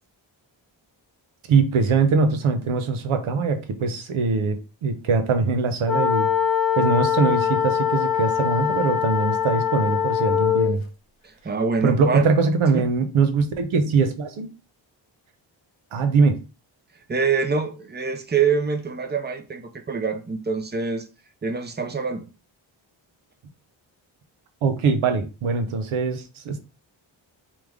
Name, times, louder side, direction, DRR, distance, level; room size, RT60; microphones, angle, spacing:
voice 1, 1.5-6.3 6.8-10.8 11.8-14.5 15.9-16.4 24.6-26.6, right 4 dB, 85° right, 0.7 m, -22 dB
sound 1, 5.9-10.8, left 9 dB, 85° left, 1.0 m, -22 dB
voice 2, 11.2-12.3 12.7-12.8 17.1-21.1 21.4-22.2, right 5 dB, 20° right, 0.7 m, -25 dB
4.6 x 2.1 x 3.5 m
cardioid pair, 45°, 48 cm